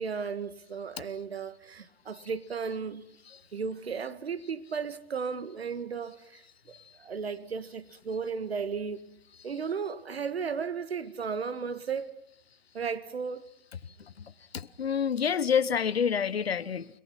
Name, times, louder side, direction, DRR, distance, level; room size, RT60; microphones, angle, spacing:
voice 1, 0.0-3.0 3.5-9.1 9.4-12.1 12.7-13.5, right 5 dB, 80° right, 1.7 m, -35 dB
voice 2, 14.0-16.9, left 7 dB, 80° left, 1.0 m, -28 dB
29.5 x 22.0 x 6.0 m
figure-of-eight pair, 95°, 30 cm